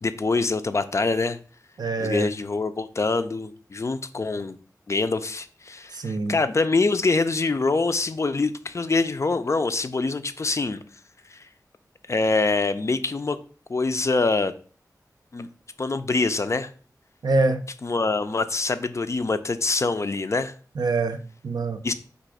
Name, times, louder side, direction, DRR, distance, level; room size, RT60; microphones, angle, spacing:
voice 1, 0.0-1.4 2.0-4.6 4.9-10.8 11.3-11.4 12.1-13.4 13.7-14.5 15.3-15.5 15.8-16.7 17.8-20.5 21.8-21.9, left 3 dB, 45° left, 0.4 m, -24 dB
voice 2, 1.8-2.3 5.9-6.4 17.2-17.6 20.7-21.9, right 3 dB, 80° right, 0.4 m, -25 dB
4.0 x 2.5 x 4.7 m
wide cardioid pair, 60°, 7 cm